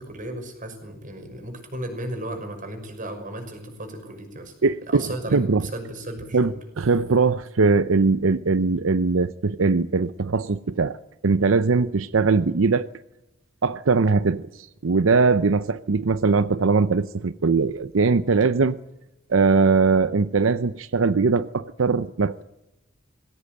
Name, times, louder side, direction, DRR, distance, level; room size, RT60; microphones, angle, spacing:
voice 1, 0.0-4.5 4.9-6.5, right 1 dB, 45° right, 6.0 m, -35 dB
voice 2, 4.6-5.0 5.3-5.6 6.3-11.0 11.2-12.9 13.6-18.8 19.3-22.4, right 4 dB, 85° right, 0.7 m, -21 dB
21.0 x 16.5 x 9.2 m
head